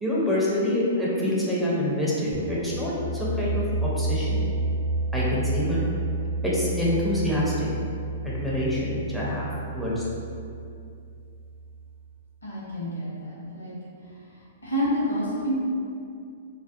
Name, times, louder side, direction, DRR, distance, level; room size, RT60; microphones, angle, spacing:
voice 1, 0.0-4.5 5.1-5.8 6.4-7.7 8.2-10.0, left 1 dB, ahead, -8 dB, 0.5 m, -26 dB
sound 1, 2.3-11.9, right 2 dB, 55° right, 0.4 m, -30 dB
voice 2, 12.4-13.7 14.6-15.5, equal, 85° left, -7 dB, 0.8 m, -28 dB
2.4 x 2.2 x 2.4 m, 2.5 s
figure-of-eight pair, 110°, 0 cm